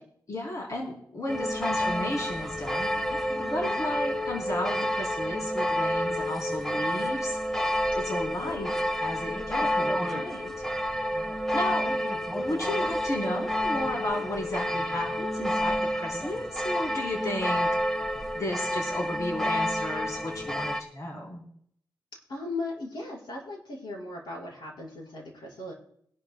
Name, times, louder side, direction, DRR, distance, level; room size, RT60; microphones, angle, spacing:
voice 1, 0.3-7.4 7.9-10.5 11.5-11.9 12.3-17.7 18.3-21.4, left 1 dB, 45° left, -1 dB, 3.4 m, -34 dB
sound 1, 1.3-20.8, equal, 5° left, 1.1 m, -29 dB
voice 2, 8.1-8.5 11.8-12.1 22.3-25.7, left 2 dB, 80° left, -2 dB, 5.0 m, -38 dB
22.5 x 12.0 x 2.2 m, 0.68 s
wide cardioid pair, 90°, 8 cm